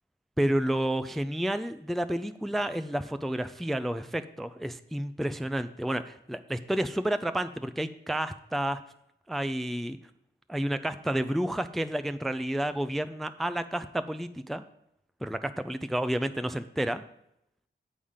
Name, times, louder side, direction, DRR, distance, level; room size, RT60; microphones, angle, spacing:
voice 1, 0.4-8.8 9.3-10.0 10.5-14.6 15.2-17.0, right 1 dB, ahead, 11 dB, 0.4 m, -30 dB
7.1 x 5.6 x 4.9 m, 0.79 s
cardioid pair, 50°, 21 cm